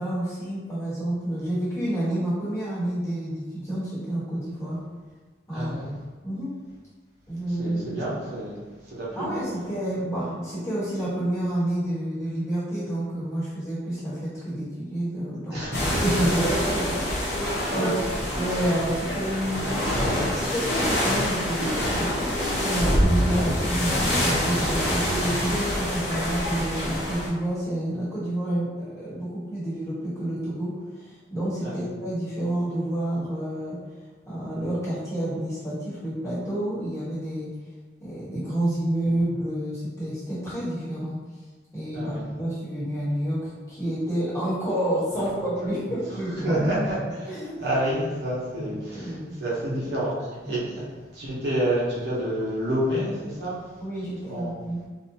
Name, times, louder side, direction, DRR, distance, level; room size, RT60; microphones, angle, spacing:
voice 1, 0.0-4.8 5.5-5.7 6.2-6.5 7.3-8.0 9.1-15.6 16.0-17.9 18.4-19.6 20.1-33.8 34.2-37.5 38.0-41.2 41.7-46.6 47.2-47.5 48.6-49.3 50.4-50.6 53.8-54.8, right 1 dB, 15° left, -11 dB, 1.1 m, -29 dB
voice 2, 5.5-5.9 7.5-9.3 15.5-16.5 17.7-18.1 18.6-18.7 31.6-31.9 41.9-42.2 45.2-45.3 45.6-45.7 46.4-47.3 47.6-50.9 51.1-53.6 54.3-54.6, right 1 dB, 70° right, -7 dB, 0.8 m, -29 dB
sound 1, 15.7-27.3, left 1 dB, 60° left, 0.8 m, -26 dB
2.6 x 2.2 x 2.8 m, 1.4 s
head